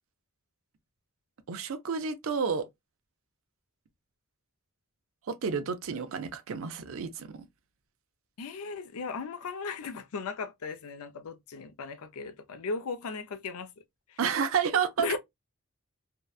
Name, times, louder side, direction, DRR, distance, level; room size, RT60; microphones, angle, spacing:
voice 1, 1.5-2.7 5.3-7.4 14.2-15.2, right 6 dB, 60° right, 0.4 m, -30 dB
voice 2, 8.4-13.7 14.1-14.2 15.0-15.2, left 4 dB, 70° left, 0.5 m, -36 dB
2.7 x 2.1 x 2.3 m
head